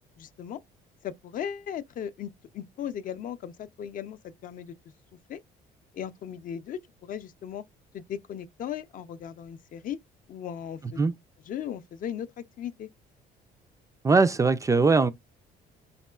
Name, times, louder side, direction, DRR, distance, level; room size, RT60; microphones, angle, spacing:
voice 1, 0.2-0.6 1.0-4.7 5.3-5.4 5.9-7.6 7.9-10.0 10.3-11.0 11.5-12.9, left 9 dB, 55° left, 0.5 m, -37 dB
voice 2, 14.0-15.1, right 4 dB, 20° right, 0.3 m, -20 dB
4.1 x 3.6 x 2.3 m
cardioid pair, 110°, 17 cm